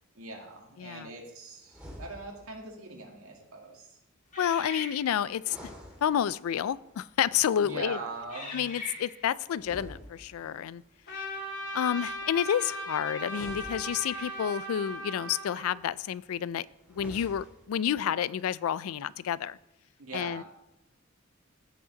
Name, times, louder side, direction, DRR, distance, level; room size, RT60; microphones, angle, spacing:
voice 1, 0.2-4.0 7.6-8.8 20.0-20.4, right 2 dB, 80° right, 0 dB, 2.1 m, -41 dB
voice 2, 0.8-1.1 4.4-5.7 6.0-8.0 8.5-10.8 11.7-19.6 20.1-20.4, left 9 dB, 80° left, 19 dB, 0.3 m, -30 dB
sound 1, 1.6-2.6 5.3-6.7 9.5-10.7 13.2-14.5 16.8-17.8, equal, 5° right, 2.0 m, -48 dB
sound 2, 4.3-5.5 6.3-6.5 7.2-7.5 8.3-9.4 12.1-12.2 13.7-14.6, left 2 dB, 35° left, 2.2 m, -43 dB
Trumpet, 11.1-15.8, equal, 60° left, 2.2 m, -38 dB
15.5 x 5.3 x 3.9 m, 0.86 s
head